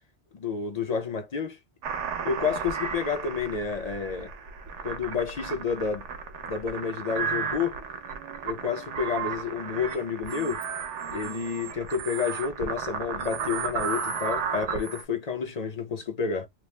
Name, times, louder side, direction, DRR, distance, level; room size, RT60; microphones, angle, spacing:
voice 1, 0.3-1.6 2.2-4.3 4.8-6.0 6.5-7.8 8.4-10.6 11.1-16.5, left 6 dB, 45° left, 0.6 m, -30 dB
sound 1, 1.8-15.0, right 6 dB, 85° right, 1.0 m, -34 dB
2.9 x 2.0 x 3.2 m
omnidirectional pair, 1.2 m